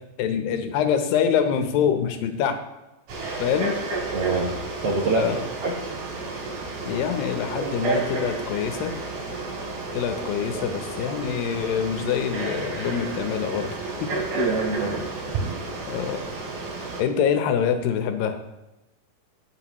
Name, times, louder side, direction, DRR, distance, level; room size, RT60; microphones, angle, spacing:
voice 1, 0.2-2.6 3.4-3.8 5.1-5.4 6.9-8.9 9.9-14.1 15.9-16.2 17.0-18.4, left 8 dB, 80° left, 7 dB, 2.5 m, -25 dB
Frog, 3.1-17.0, right 3 dB, 80° right, 4.2 m, -31 dB
voice 2, 4.1-4.5 4.8-5.7 14.3-15.0 15.4-15.6, right 3 dB, 65° right, -1 dB, 1.6 m, -26 dB
19.5 x 6.6 x 3.0 m, 1.0 s
omnidirectional pair, 4.1 m